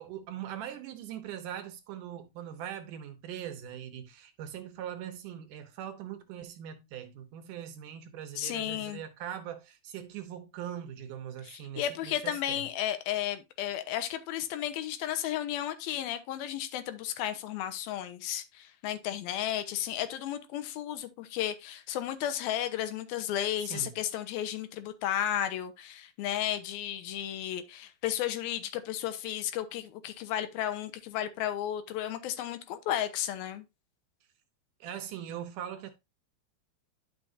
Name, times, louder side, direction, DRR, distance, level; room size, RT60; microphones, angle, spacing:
voice 1, 0.0-12.6 23.6-23.9 34.8-35.9, right 10 dB, 70° right, 2.2 m, -41 dB
voice 2, 8.4-9.0 11.4-33.7, left 11 dB, 85° left, 2.8 m, -33 dB
10.5 x 6.2 x 2.6 m
omnidirectional pair, 4.2 m